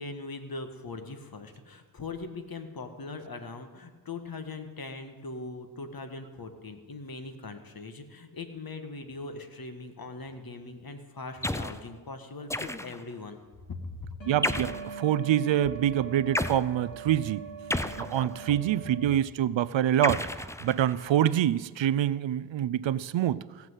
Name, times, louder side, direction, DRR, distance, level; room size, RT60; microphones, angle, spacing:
voice 1, 0.0-13.4 13.7-14.1, left 3 dB, 50° left, 7 dB, 1.7 m, -40 dB
sound 1, 11.4-11.8 12.5-13.1 14.4-14.9 16.3-16.6 17.7-18.6 20.0-21.1, left 1 dB, 5° left, 0.6 m, -32 dB
sound 2, 14.2-19.0, right 6 dB, 80° left, 3.9 m, -42 dB
voice 2, 14.3-17.4 18.0-23.4, right 11 dB, 75° right, 18 dB, 0.6 m, -26 dB
16.5 x 6.0 x 8.1 m, 1.4 s
cardioid pair, 55°, 46 cm